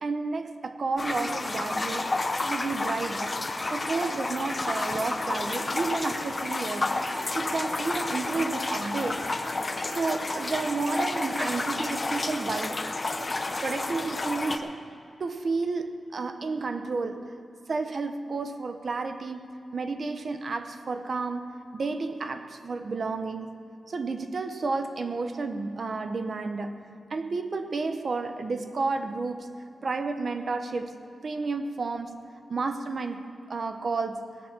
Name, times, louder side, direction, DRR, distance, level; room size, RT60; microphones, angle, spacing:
voice 1, 0.0-2.1 2.4-3.3 3.7-7.0 7.3-9.3 9.8-12.8 13.6-14.8 15.2-17.3 17.7-23.5 23.9-29.5 29.8-31.0 31.2-32.1 32.5-34.2, right 3 dB, 50° right, 8 dB, 0.8 m, -31 dB
sound 1, 1.0-14.6, left 2 dB, 25° left, 0.7 m, -30 dB
18.5 x 6.5 x 7.2 m, 2.8 s
wide cardioid pair, 155°, 0 cm